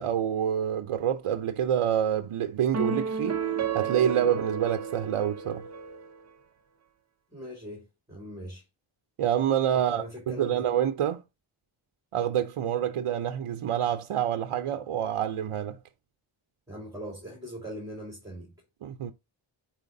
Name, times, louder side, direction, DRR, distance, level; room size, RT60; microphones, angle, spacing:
voice 1, 0.0-3.4 3.7-5.6 9.2-11.2 12.1-15.8 18.8-19.1, right 9 dB, 85° right, 0.7 m, -27 dB
sound 1, 2.7-6.2, right 6 dB, 35° right, 0.7 m, -32 dB
voice 2, 7.3-8.6 9.7-10.7 16.7-18.5, equal, 5° right, 3.3 m, -41 dB
9.2 x 4.4 x 2.6 m
wide cardioid pair, 155°, 49 cm